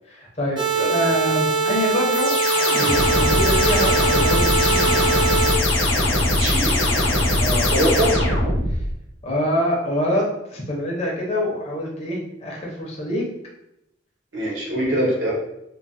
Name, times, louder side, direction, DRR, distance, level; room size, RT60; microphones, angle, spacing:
voice 1, 0.1-0.6 0.9-2.4 2.7-5.0 7.4-7.7 9.2-13.3, equal, 30° left, -3 dB, 0.6 m, -25 dB
sound 1, 0.6-5.6, right 4 dB, 20° right, 0.4 m, -22 dB
sound 2, 2.1-8.9, left 1 dB, 85° left, 0.7 m, -20 dB
voice 2, 6.4-6.9 7.7-8.2 14.3-15.3, equal, 70° right, -4 dB, 0.9 m, -22 dB
3.1 x 2.1 x 2.6 m, 0.83 s
head